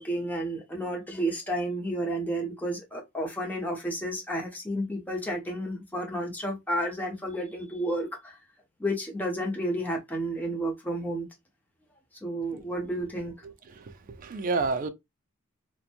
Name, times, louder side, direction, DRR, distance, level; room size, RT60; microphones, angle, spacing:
voice 1, 0.0-8.4 8.8-11.3 12.2-13.3, right 1 dB, 10° left, 0.7 m, -31 dB
voice 2, 13.4-13.9 14.2-14.9, right 3 dB, 40° right, 0.4 m, -30 dB
2.9 x 2.1 x 2.4 m
head